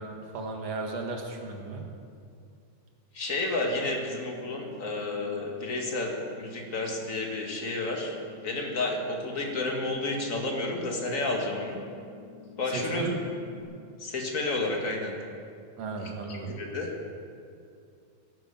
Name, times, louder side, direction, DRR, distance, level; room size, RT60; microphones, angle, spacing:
voice 1, 0.0-1.8 12.7-13.2 15.8-16.5, right 3 dB, 60° right, 2 dB, 2.8 m, -35 dB
voice 2, 3.1-8.1 8.4-11.8 12.6-13.3 14.0-15.1 16.0-16.9, left 2 dB, 30° left, 0 dB, 2.1 m, -31 dB
sound 1, 3.6-13.6, left 6 dB, 50° left, 2.9 m, -50 dB
17.5 x 10.5 x 7.1 m, 2.4 s
omnidirectional pair, 3.4 m